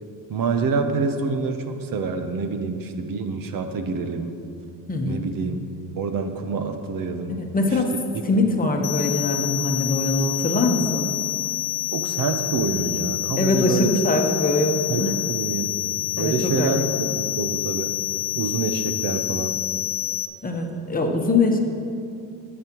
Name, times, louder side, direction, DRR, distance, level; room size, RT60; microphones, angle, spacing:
voice 1, 0.3-4.4 5.0-5.6 6.0-7.5 7.7-7.8 11.9-14.0 14.9-18.0 18.3-19.6, right 4 dB, 55° right, 7 dB, 0.8 m, -27 dB
voice 2, 4.9-5.3 7.4-7.9 8.2-11.1 13.4-15.2 16.2-16.7 20.4-21.6, left 2 dB, 20° left, 2 dB, 1.0 m, -22 dB
sound 1, 8.8-20.3, left 15 dB, 90° left, 0.8 m, -28 dB
14.0 x 8.7 x 3.0 m, 2.5 s
cardioid pair, 110°, 40 cm